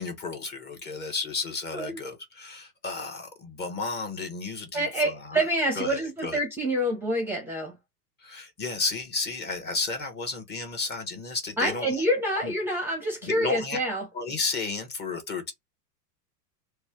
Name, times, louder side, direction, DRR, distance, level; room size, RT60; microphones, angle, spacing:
voice 1, 0.0-5.4 5.8-6.4 8.2-11.9 12.4-12.5 13.2-13.8 14.1-15.5, left 3 dB, 20° left, 1.0 m, -33 dB
voice 2, 4.7-7.8 11.6-14.1, right 1 dB, 5° right, 0.7 m, -27 dB
3.1 x 2.2 x 4.2 m
hypercardioid pair, 125°, 48 cm